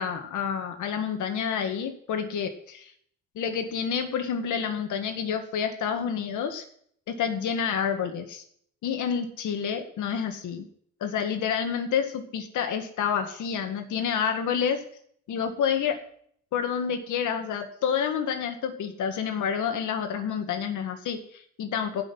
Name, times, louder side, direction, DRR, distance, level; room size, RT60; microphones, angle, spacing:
voice 1, 0.0-2.9 3.4-6.7 7.1-8.4 8.8-10.7 11.0-14.8 15.3-16.0 16.5-22.0, left 7 dB, 80° left, 6 dB, 2.0 m, -29 dB
16.5 x 6.0 x 6.2 m, 0.63 s
cardioid pair, 90°, 30 cm